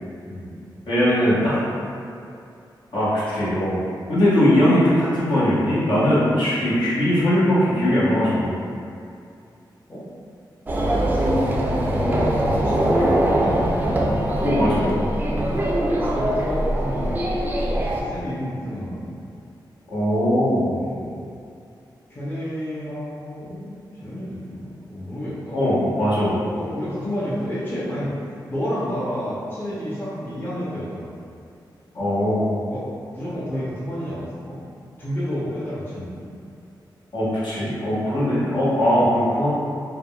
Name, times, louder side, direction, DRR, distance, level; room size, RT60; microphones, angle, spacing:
voice 1, 0.9-1.5 2.9-3.8 4.1-8.6 12.9-13.1 14.4-14.9 19.9-20.8 25.5-26.4 31.9-32.5 37.1-39.5, equal, 70° left, -11 dB, 1.0 m, -20 dB
sound 1, 10.7-18.0, right 1 dB, 25° right, 0.4 m, -22 dB
voice 2, 10.9-13.9 16.1-17.3 18.0-19.2 20.7-21.2 22.1-23.7 24.0-25.6 26.5-28.2 28.5-31.2 32.7-32.9 33.1-34.6 35.0-36.3, equal, 25° left, -10 dB, 0.7 m, -30 dB
3.5 x 2.2 x 2.3 m, 2.5 s
wide cardioid pair, 110°, 8 cm